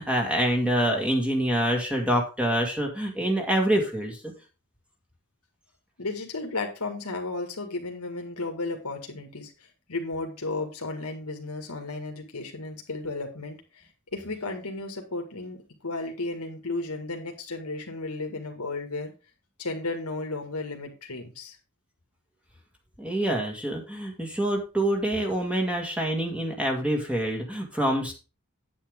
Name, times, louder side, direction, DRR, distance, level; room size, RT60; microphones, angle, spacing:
voice 1, 0.0-4.2 23.0-28.1, right 1 dB, 5° right, 1 dB, 1.9 m, -26 dB
voice 2, 6.0-19.1 19.6-21.6, left 2 dB, 85° left, 4 dB, 1.9 m, -34 dB
8.8 x 8.6 x 3.7 m, 0.31 s
head